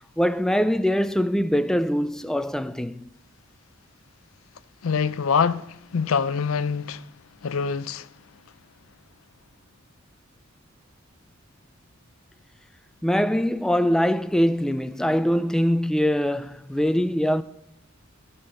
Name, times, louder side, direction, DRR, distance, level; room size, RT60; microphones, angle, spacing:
voice 1, 0.2-3.1 13.0-17.4, equal, 5° left, 0.3 m, -23 dB
voice 2, 4.8-7.1 7.4-8.1, left 6 dB, 80° left, 0.5 m, -25 dB
15.0 x 5.5 x 5.6 m
head